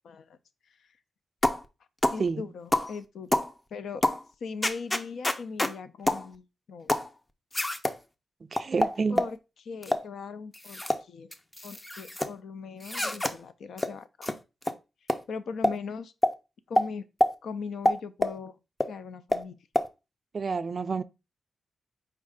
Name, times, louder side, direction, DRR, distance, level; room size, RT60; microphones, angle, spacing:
voice 1, 0.0-0.4 0.8-0.9 2.1-3.4 3.7-4.1 4.4-6.9 9.1-11.3 11.6-14.4 15.3-16.1 16.7-17.1 17.4-18.6 18.9-19.6, left 5 dB, 85° left, 0.4 m, -39 dB
sound 1, 1.4-1.6 2.0-2.2 2.7-2.9 3.3-3.5 4.0-4.2 4.6-5.7 6.1-6.2 6.9-7.1 7.5-8.0 8.6-9.3 9.8-10.1 10.5-11.0 11.3-12.3 12.8-13.3 13.8-13.9 14.2-14.3 14.6-14.7 15.1-15.2 15.6-15.8 16.2-16.3 16.8-16.9 17.2-17.3 17.8-18.4 18.8-18.9 19.3-19.4 19.7-19.9, left 1 dB, 20° left, 0.5 m, -26 dB
voice 2, 8.5-9.2 20.3-21.0, right 4 dB, 45° right, 0.3 m, -29 dB
4.4 x 2.4 x 4.8 m
cardioid pair, 85°, 0 cm